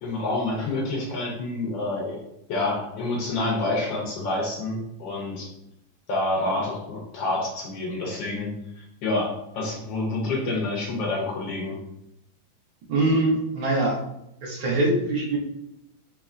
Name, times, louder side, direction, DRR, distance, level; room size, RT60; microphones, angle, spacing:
voice 1, 0.0-2.2 2.5-5.5 6.1-11.8, left 2 dB, 75° left, -2 dB, 1.4 m, -28 dB
voice 2, 12.9-14.0 14.4-15.4, right 2 dB, 80° right, -2 dB, 1.7 m, -23 dB
4.3 x 3.0 x 2.4 m, 0.84 s
omnidirectional pair, 2.1 m